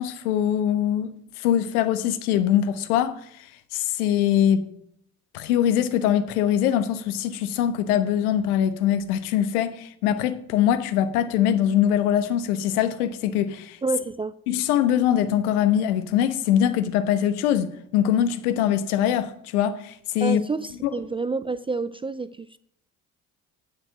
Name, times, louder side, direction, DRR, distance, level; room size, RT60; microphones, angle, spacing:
voice 1, 0.0-3.2 3.7-4.7 5.3-13.8 14.5-20.4 20.8-20.9, left 10 dB, 75° left, 1.1 m, -23 dB
voice 2, 13.8-14.3 20.2-22.6, right 4 dB, 15° right, 0.3 m, -28 dB
9.1 x 8.9 x 6.1 m
hypercardioid pair, 55°, 45 cm